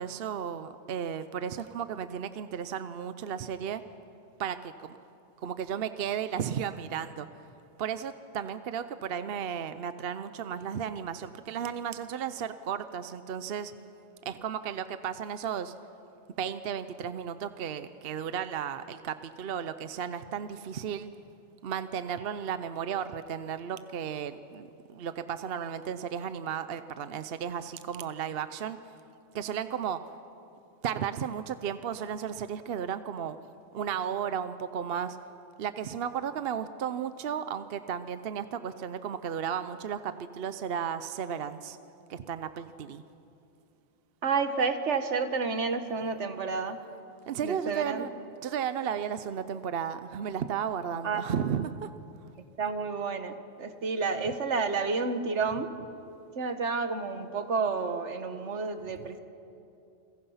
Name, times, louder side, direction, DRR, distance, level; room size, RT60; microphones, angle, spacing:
voice 1, 0.0-3.8 4.4-5.0 5.4-7.3 7.8-13.7 14.2-15.7 16.4-21.1 21.6-28.8 29.3-30.0 30.8-33.4 33.7-35.2 35.6-41.8 42.1-43.0 47.3-48.1 48.4-51.9, right 8 dB, 60° right, 12 dB, 0.8 m, -34 dB
voice 2, 44.2-46.8 47.4-48.1 51.0-51.2 52.6-55.7 56.4-59.2, right 4 dB, 80° right, 8 dB, 1.6 m, -30 dB
29.5 x 21.0 x 5.7 m, 2.7 s
omnidirectional pair, 1.2 m